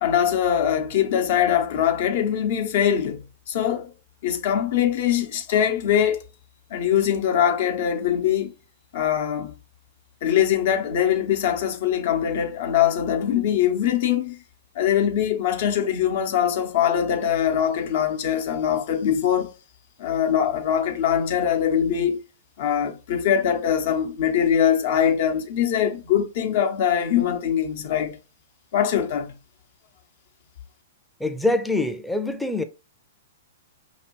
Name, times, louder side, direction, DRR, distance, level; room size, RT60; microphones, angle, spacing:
voice 1, 0.0-3.9 4.2-6.2 6.7-8.5 8.9-9.5 10.2-14.4 14.7-19.5 20.0-22.2 22.6-28.2 28.7-29.3, left 9 dB, 60° left, 0.9 m, -22 dB
voice 2, 31.2-32.6, left 2 dB, 5° left, 0.5 m, -24 dB
5.2 x 2.8 x 3.0 m
hypercardioid pair, 125°, 0 cm